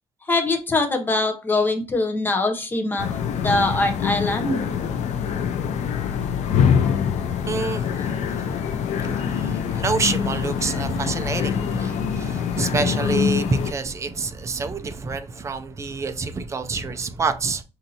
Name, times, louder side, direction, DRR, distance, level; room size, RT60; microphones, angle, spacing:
voice 1, 0.3-4.7, left 2 dB, 15° left, 0.6 m, -23 dB
sound 1, 3.0-13.7, left 7 dB, 85° left, 0.4 m, -24 dB
voice 2, 7.5-8.6 9.0-17.6, right 4 dB, 25° right, 0.4 m, -27 dB
5.4 x 2.6 x 2.7 m
wide cardioid pair, 170°, 12 cm